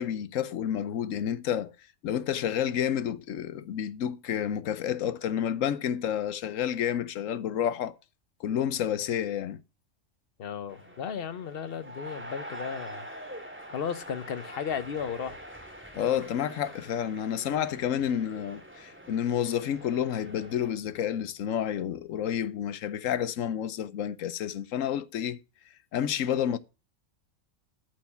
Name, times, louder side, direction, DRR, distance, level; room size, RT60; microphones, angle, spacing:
voice 1, 0.0-1.7 2.0-7.9 8.4-9.6 15.9-25.4 25.9-26.6, left 9 dB, 85° left, 1.1 m, -30 dB
voice 2, 10.4-13.0 13.7-15.4, left 7 dB, 50° left, 1.0 m, -35 dB
Football-match Crowd Cheer Ambience .stereo, 10.7-20.7, right 1 dB, 10° right, 2.4 m, -45 dB
13.0 x 4.7 x 6.8 m
omnidirectional pair, 1.3 m